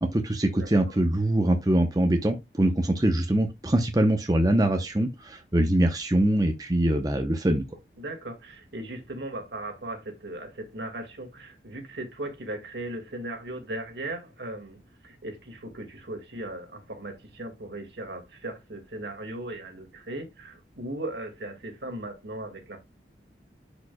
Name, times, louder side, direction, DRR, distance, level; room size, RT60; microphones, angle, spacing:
voice 1, 0.0-7.6, right 1 dB, 20° right, 0.7 m, -23 dB
voice 2, 8.0-22.8, right 1 dB, 70° right, 2.0 m, -37 dB
10.5 x 5.0 x 2.2 m
head